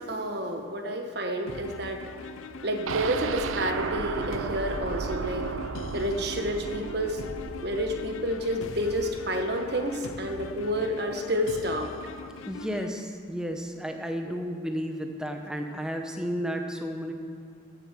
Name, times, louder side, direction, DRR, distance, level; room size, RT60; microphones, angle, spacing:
voice 1, 0.0-2.0 2.6-5.5 5.9-7.2 7.6-11.9 14.2-14.3, equal, 55° right, 4 dB, 1.2 m, -29 dB
sound 1, 1.5-12.9, left 4 dB, 85° left, 0.5 m, -41 dB
sound 2, 2.9-10.7 11.1-11.2 11.5-11.6, right 5 dB, 85° right, 0.5 m, -35 dB
voice 2, 12.5-17.1, equal, 5° right, 3 dB, 0.8 m, -32 dB
14.0 x 7.0 x 6.2 m, 2.2 s
head